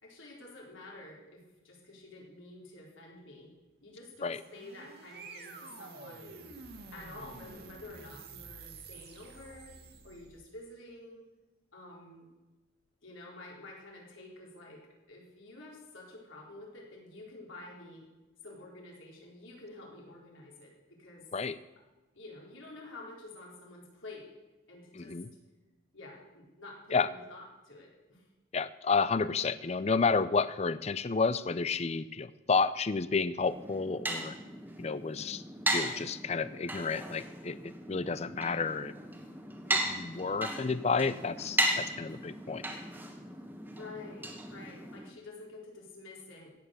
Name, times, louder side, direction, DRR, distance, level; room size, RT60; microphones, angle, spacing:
voice 1, 0.0-3.5 3.8-6.4 6.9-9.8 10.0-11.3 11.7-12.3 13.0-18.1 18.4-21.2 22.1-24.3 24.7-25.1 25.9-28.2 43.7-46.5, left 2 dB, 80° left, -2 dB, 4.3 m, -49 dB
sound 1, 4.2-10.5, right 4 dB, 50° right, 1.9 m, -49 dB
voice 2, 25.0-25.3 26.9-27.1 28.5-34.3 34.8-35.4 35.7-38.9 39.7-42.6, left 4 dB, 30° left, 15 dB, 0.4 m, -31 dB
sound 2, 33.5-45.1, right 1 dB, 10° right, 1.3 m, -36 dB
16.0 x 9.2 x 6.7 m, 1.1 s
head